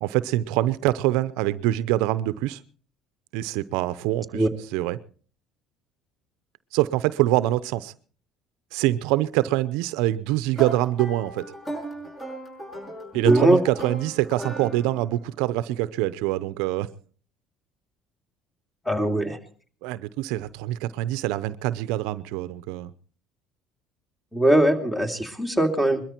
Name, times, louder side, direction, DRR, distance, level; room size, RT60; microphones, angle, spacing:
voice 1, 0.0-2.6 3.3-5.0 6.7-7.9 8.7-11.4 13.1-16.9 19.8-22.9, right 15 dB, 80° right, 0.6 m, -25 dB
sound 1, 10.5-15.2, right 2 dB, 25° left, 6.8 m, -36 dB
voice 2, 13.2-13.6 18.9-19.4 24.3-26.0, right 1 dB, 5° left, 2.7 m, -20 dB
21.5 x 13.5 x 4.5 m
supercardioid pair, 90°, 0 cm